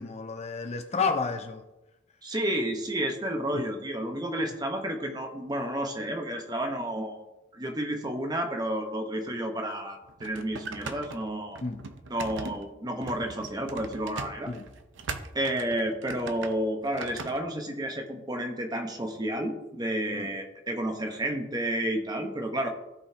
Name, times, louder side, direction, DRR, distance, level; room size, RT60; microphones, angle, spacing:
voice 1, 0.0-1.6 3.5-3.7 11.6-11.9 14.5-14.7 20.1-20.3, left 4 dB, 30° left, 0.5 m, -31 dB
voice 2, 2.2-7.2 7.5-11.6 12.1-14.5 15.3-22.7, right 1 dB, 20° right, 1.0 m, -31 dB
sound 1, 10.0-17.4, right 4 dB, 65° right, 0.7 m, -40 dB
16.0 x 5.3 x 2.9 m
head